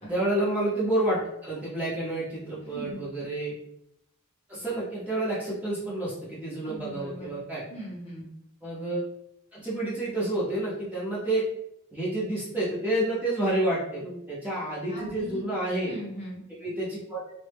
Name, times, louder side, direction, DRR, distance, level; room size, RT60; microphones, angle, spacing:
voice 1, 0.0-3.5 4.5-7.6 8.6-9.0 9.5-11.5 11.9-16.0 16.6-17.3, right 1 dB, 5° right, -9 dB, 0.6 m, -29 dB
voice 2, 2.6-3.1 6.6-7.4 7.7-8.3 14.9-15.4 15.8-16.4, right 1 dB, 30° left, -5 dB, 0.8 m, -40 dB
2.1 x 2.0 x 3.3 m, 0.79 s
head